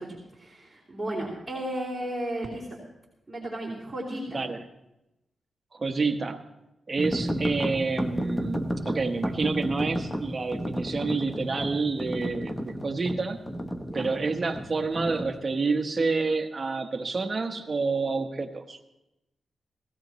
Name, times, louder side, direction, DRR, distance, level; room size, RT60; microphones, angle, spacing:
voice 1, 0.0-2.8 3.3-4.4 7.2-7.4 13.9-14.0, right 1 dB, 15° right, -8 dB, 3.3 m, -34 dB
voice 2, 5.7-6.4 6.9-13.4 13.9-18.8, right 4 dB, 30° right, 4 dB, 1.1 m, -28 dB
sound 1, 7.0-15.4, equal, 10° left, 0.9 m, -32 dB
17.5 x 16.0 x 3.1 m, 0.92 s
wide cardioid pair, 120°, 0 cm